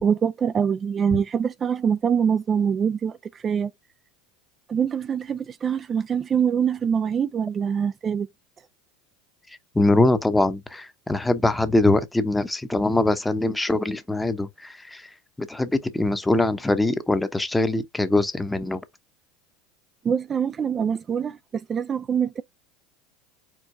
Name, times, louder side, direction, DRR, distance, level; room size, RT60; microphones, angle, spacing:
voice 1, 0.0-3.7 4.7-8.3 20.0-22.4, right 7 dB, 30° right, 0.3 m, -24 dB
voice 2, 9.5-18.8, left 2 dB, 10° left, 0.8 m, -23 dB
4.6 x 4.3 x 2.7 m
hypercardioid pair, 85°, 0 cm